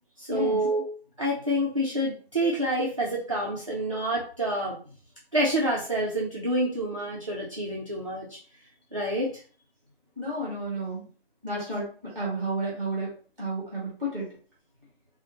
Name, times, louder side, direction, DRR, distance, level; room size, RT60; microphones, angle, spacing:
voice 1, 0.2-0.9 1.2-4.8 5.3-8.4 8.9-9.4, right 1 dB, 30° right, -5 dB, 0.4 m, -27 dB
voice 2, 10.2-11.0 11.4-11.8 12.1-13.1 13.4-14.2, right 1 dB, 5° right, -5 dB, 1.0 m, -31 dB
3.0 x 2.1 x 2.8 m, 0.41 s
figure-of-eight pair, 160°, 32 cm